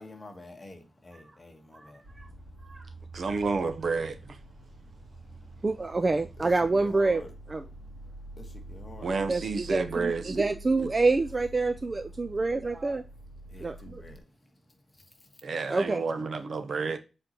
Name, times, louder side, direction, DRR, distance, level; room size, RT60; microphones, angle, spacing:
voice 1, 0.0-3.4 4.4-5.7 6.4-7.3 7.6-9.3 12.1-12.8 13.4-15.6, left 2 dB, 25° left, 1.3 m, -50 dB
sound 1, 2.0-14.2, right 1 dB, 90° right, 2.5 m, -46 dB
voice 2, 3.1-4.4 9.0-10.5 10.8-10.9 15.4-17.0, right 4 dB, 55° right, 0.7 m, -30 dB
voice 3, 5.6-7.2 7.5-7.6 9.3-13.0 13.6-13.8 15.7-16.1, right 3 dB, 30° right, 0.3 m, -27 dB
7.6 x 4.3 x 2.9 m
wide cardioid pair, 140°, 0 cm